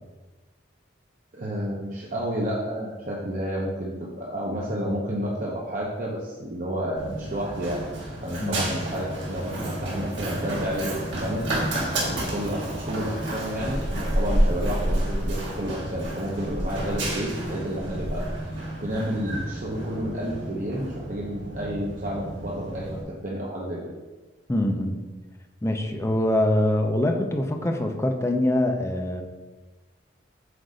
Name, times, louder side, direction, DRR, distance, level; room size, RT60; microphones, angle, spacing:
voice 1, 1.3-7.8 8.2-11.5 12.0-18.5 18.8-23.8, equal, 45° right, -4 dB, 0.8 m, -30 dB
Run, 7.0-23.0, right 1 dB, 75° right, 1.7 m, -30 dB
voice 2, 24.5-25.0 25.6-29.2, left 1 dB, 15° left, 4 dB, 0.5 m, -24 dB
7.8 x 2.6 x 5.0 m, 1.2 s
head